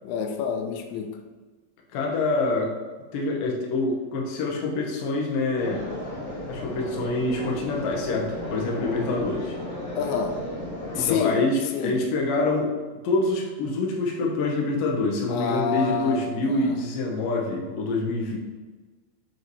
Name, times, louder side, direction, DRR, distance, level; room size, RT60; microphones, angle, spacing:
voice 1, 0.0-1.2 9.9-10.4 11.0-11.4 11.7-12.0 15.3-16.8, left 6 dB, 85° left, 6 dB, 2.9 m, -28 dB
voice 2, 1.9-2.7 3.1-5.8 6.5-9.6 10.9-12.7 13.0-18.4, left 2 dB, 70° left, -1 dB, 2.2 m, -26 dB
sound 1, 5.6-11.0, left 1 dB, 50° left, 2.9 m, -35 dB
7.0 x 5.4 x 3.1 m, 1.3 s
omnidirectional pair, 5.2 m